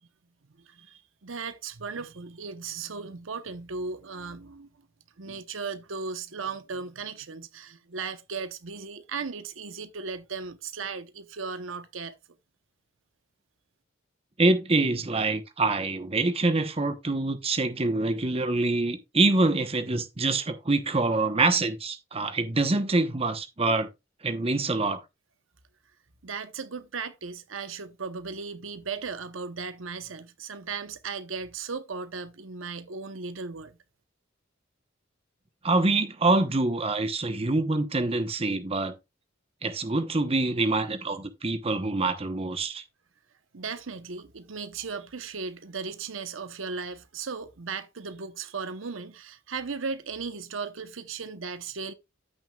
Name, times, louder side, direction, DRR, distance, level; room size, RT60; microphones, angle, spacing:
voice 1, 0.7-4.7 5.2-12.1 26.2-33.8 43.5-51.9, right 5 dB, 80° right, 0.9 m, -36 dB
voice 2, 14.4-23.9 24.2-25.0 35.6-38.9 39.6-42.8, right 2 dB, 30° right, 0.9 m, -25 dB
14.0 x 6.3 x 2.3 m
head